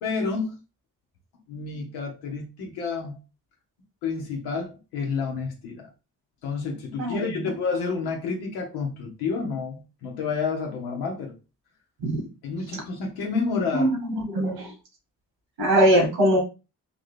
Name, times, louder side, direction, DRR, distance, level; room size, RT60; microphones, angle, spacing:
voice 1, 0.0-0.6 1.5-3.2 4.0-5.9 6.4-11.3 12.4-13.9, left 4 dB, 90° left, 1.0 m, -29 dB
voice 2, 7.0-7.5 12.0-12.2 13.7-14.7 15.6-16.4, right 1 dB, 85° right, 1.7 m, -22 dB
3.5 x 2.7 x 3.2 m
hypercardioid pair, 45°, 37 cm